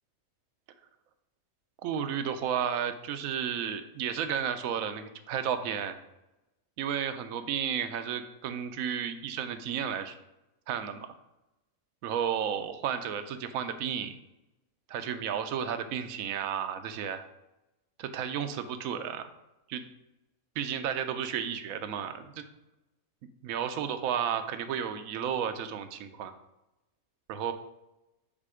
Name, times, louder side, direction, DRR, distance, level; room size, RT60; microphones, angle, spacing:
voice 1, 1.8-6.0 6.8-10.2 10.7-11.1 12.0-14.1 14.9-17.3 18.0-19.3 19.7-19.8 20.6-22.4 23.4-26.3 27.3-27.5, right 8 dB, 75° right, 9 dB, 1.1 m, -32 dB
7.5 x 4.4 x 4.9 m, 0.96 s
omnidirectional pair, 1.5 m